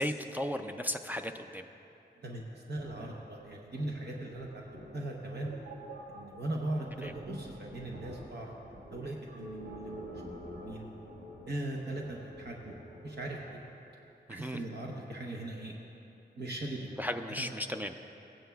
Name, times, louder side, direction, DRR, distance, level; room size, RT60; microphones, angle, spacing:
voice 1, 0.0-1.6 7.0-7.1 14.4-14.6 17.0-17.9, left 1 dB, 10° right, 5 dB, 0.3 m, -35 dB
voice 2, 2.2-5.5 6.1-8.6 8.9-10.9 11.5-12.7 13.0-13.6 14.3-15.7 16.4-17.5, right 1 dB, 65° right, -1 dB, 0.8 m, -39 dB
sound 1, 2.7-13.6, equal, 90° right, 1.4 m, -48 dB
16.0 x 9.1 x 2.3 m, 2.9 s
wide cardioid pair, 85°, 18 cm